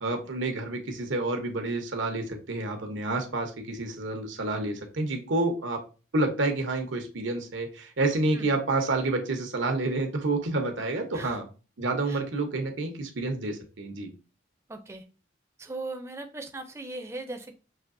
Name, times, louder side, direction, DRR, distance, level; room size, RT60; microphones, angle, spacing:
voice 1, 0.0-5.8 6.1-11.5 11.8-14.1, right 2 dB, 90° right, 4 dB, 0.9 m, -29 dB
voice 2, 14.7-15.0 15.6-17.5, right 2 dB, 15° right, 5 dB, 0.5 m, -38 dB
5.9 x 2.7 x 2.6 m, 0.35 s
head